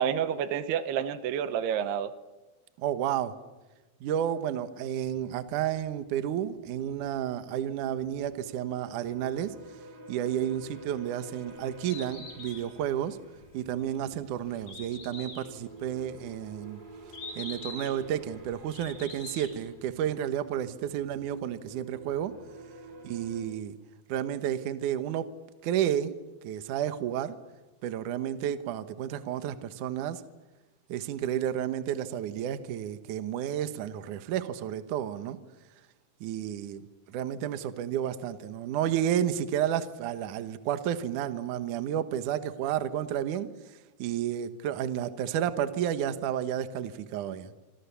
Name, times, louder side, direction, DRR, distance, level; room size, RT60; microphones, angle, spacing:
voice 1, 0.0-2.1, right 9 dB, 80° right, 12 dB, 3.0 m, -29 dB
voice 2, 2.8-3.3 4.0-9.5 10.1-13.2 13.5-16.8 17.4-22.3 23.0-23.8 24.1-25.3 25.6-26.1 26.4-27.3 27.8-30.2 30.9-35.4 36.2-36.8 37.1-47.5, right 10 dB, 65° right, 10 dB, 2.3 m, -31 dB
sound 1, 5.0-23.4, right 2 dB, 40° right, 8.0 m, -50 dB
Bird, 11.7-19.7, left 3 dB, 50° left, 6.0 m, -45 dB
27.0 x 26.5 x 7.1 m, 1.1 s
omnidirectional pair, 4.7 m